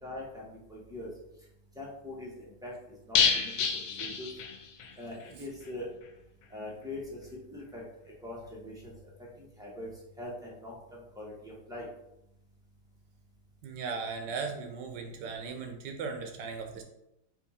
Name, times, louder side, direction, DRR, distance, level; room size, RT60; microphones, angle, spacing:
voice 1, 0.0-1.1 1.8-2.7 3.1-4.3 5.0-5.9 6.5-7.2 7.5-7.8 8.2-8.9 9.4-9.9 10.2-11.9, left 1 dB, 5° right, -5 dB, 0.4 m, -42 dB
sound 1, 3.1-4.9 5.2-5.3 5.6-5.7, left 6 dB, 70° left, 0.9 m, -28 dB
voice 2, 13.6-16.8, right 5 dB, 85° right, 4 dB, 1.4 m, -37 dB
4.5 x 2.4 x 4.1 m, 0.85 s
omnidirectional pair, 1.9 m